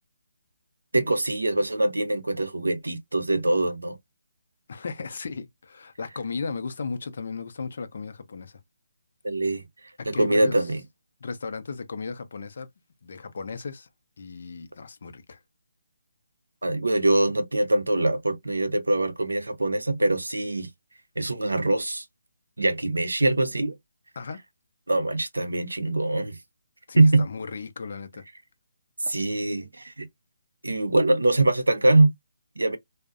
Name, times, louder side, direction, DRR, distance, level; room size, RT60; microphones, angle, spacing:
voice 1, 0.9-4.0 9.2-9.6 10.1-10.8 16.6-20.7 21.2-22.0 22.6-23.7 24.9-26.4 27.0-27.3 29.1-30.1 30.6-32.1 32.6-32.8, right 2 dB, 85° right, 0.5 m, -23 dB
voice 2, 4.7-8.6 10.0-10.6 11.2-12.7 13.0-13.9 14.2-15.4 24.2-24.4 26.9-28.2, left 4 dB, 55° left, 0.5 m, -35 dB
2.5 x 2.0 x 2.4 m
figure-of-eight pair, 150°, 0 cm